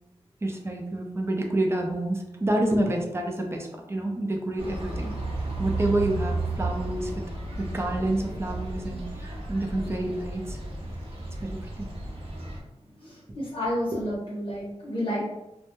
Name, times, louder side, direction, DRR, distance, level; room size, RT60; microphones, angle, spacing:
voice 1, 0.4-5.2 5.6-7.2 7.6-10.6 11.4-11.9, right 1 dB, 20° right, 1 dB, 0.5 m, -28 dB
sound 1, 4.6-12.6, right 2 dB, 60° right, 0.7 m, -33 dB
voice 2, 13.0-15.2, equal, 50° left, -6 dB, 0.7 m, -30 dB
2.2 x 2.1 x 2.9 m, 0.91 s
wide cardioid pair, 75°, 11 cm